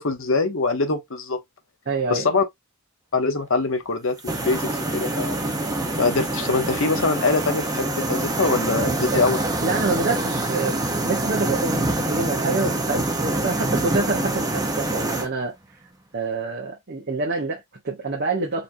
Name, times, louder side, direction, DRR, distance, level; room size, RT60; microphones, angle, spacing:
voice 1, 0.0-1.4 2.1-2.4 3.1-5.4 6.0-9.4, left 3 dB, 65° left, 0.9 m, -23 dB
voice 2, 1.9-2.3 8.8-9.2 9.6-15.5 16.1-18.6, right 3 dB, 50° right, 1.0 m, -27 dB
sound 1, 4.2-15.3, right 2 dB, 15° right, 0.9 m, -25 dB
4.2 x 2.9 x 2.6 m
head